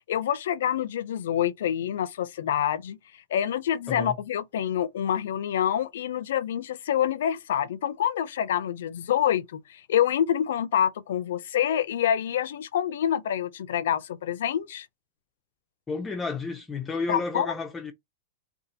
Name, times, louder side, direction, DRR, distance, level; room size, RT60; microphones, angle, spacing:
voice 1, 0.1-3.0 3.3-14.9 17.1-17.5, left 10 dB, 75° left, 0.4 m, -27 dB
voice 2, 15.9-17.9, left 4 dB, 15° left, 0.4 m, -31 dB
2.7 x 2.4 x 3.9 m
supercardioid pair, 145°, 0 cm